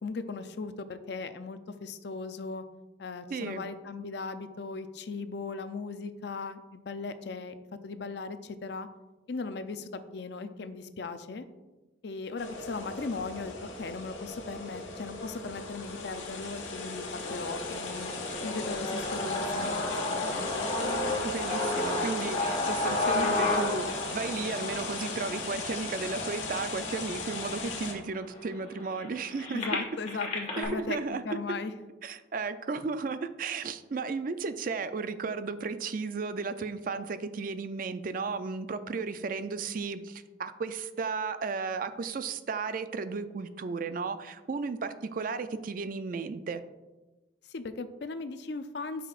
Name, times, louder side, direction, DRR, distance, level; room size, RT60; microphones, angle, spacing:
voice 1, 0.0-2.6 3.0-7.5 7.8-8.9 9.3-11.5 12.0-13.5 13.8-18.1 18.4-20.7 29.5-31.0 31.2-31.7 47.5-49.1, left 4 dB, 60° left, 10 dB, 0.5 m, -38 dB
voice 2, 3.3-3.7 21.2-29.6 30.6-31.2 32.0-46.6, right 4 dB, 45° right, 11 dB, 0.4 m, -34 dB
sound 1, 12.4-27.9, left 3 dB, 85° left, 1.3 m, -38 dB
sound 2, 17.2-27.2 27.8-27.9 28.2-30.6, left 2 dB, 35° left, 1.4 m, -32 dB
9.3 x 6.0 x 2.5 m, 1.1 s
head